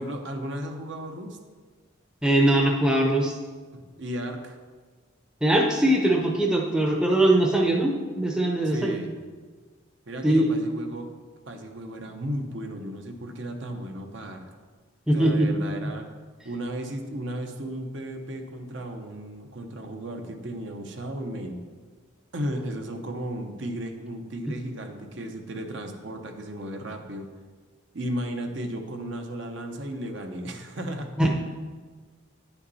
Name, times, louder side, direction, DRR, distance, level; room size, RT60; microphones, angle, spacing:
voice 1, 0.0-1.4 3.7-4.6 8.6-9.1 10.1-11.1 11.5-14.4 15.1-16.1 16.4-21.6 22.3-27.3 27.9-31.2, right 1 dB, 60° right, 4 dB, 0.8 m, -34 dB
voice 2, 2.2-3.4 5.4-9.0 10.2-10.4 15.1-15.7 31.2-31.3, right 1 dB, 5° right, 0 dB, 0.6 m, -21 dB
9.8 x 5.8 x 4.1 m, 1.5 s
head